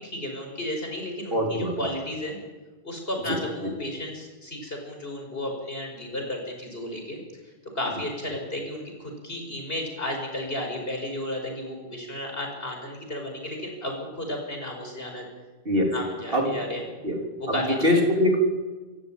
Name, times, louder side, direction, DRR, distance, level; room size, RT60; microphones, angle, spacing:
voice 1, 0.0-2.4 2.8-7.2 7.7-15.3 15.9-16.8 17.4-18.0, left 1 dB, 70° left, 2 dB, 5.5 m, -33 dB
voice 2, 1.3-1.7 15.7-15.9 16.3-16.6 17.0-17.2 17.8-18.4, left 1 dB, 65° right, 2 dB, 3.9 m, -22 dB
25.5 x 14.5 x 8.9 m, 1.3 s
omnidirectional pair, 1.0 m